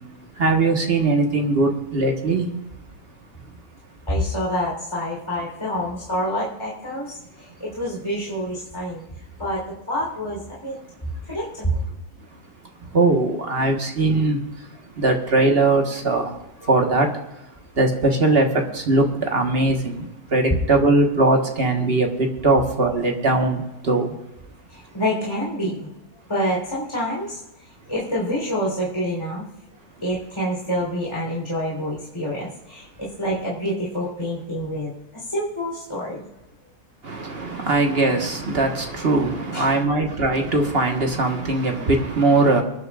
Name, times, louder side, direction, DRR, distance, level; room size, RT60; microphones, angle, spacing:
voice 1, 0.4-2.4 12.9-14.4 15.0-16.3 16.7-17.1 17.8-18.5 18.7-20.0 20.3-24.1 37.0-42.6, right 2 dB, 40° right, 2 dB, 1.6 m, -20 dB
voice 2, 4.1-9.0 9.4-10.8 11.2-11.8 16.6-16.7 24.7-25.9 26.3-27.4 27.9-29.4 30.0-36.2 39.5-39.7, equal, 15° left, -5 dB, 3.9 m, -27 dB
25.0 x 11.0 x 2.5 m, 1.0 s
omnidirectional pair, 1.7 m